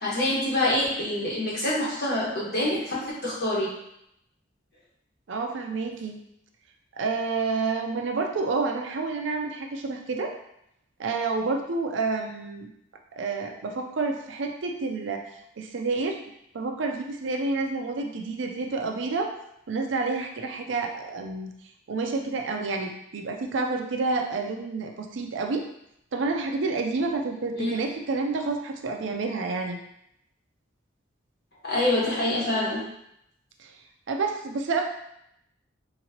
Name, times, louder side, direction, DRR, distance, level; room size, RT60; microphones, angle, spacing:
voice 1, 0.0-3.8 27.5-27.7 31.6-32.9, left 1 dB, 55° left, -6 dB, 1.2 m, -26 dB
voice 2, 5.3-6.2 6.9-10.3 11.0-12.7 13.1-15.3 15.6-16.2 16.5-19.3 19.7-21.5 21.9-25.7 26.1-29.8 33.6-33.7 34.1-34.8, right 3 dB, 75° right, 3 dB, 0.5 m, -29 dB
3.6 x 3.0 x 2.8 m, 0.77 s
head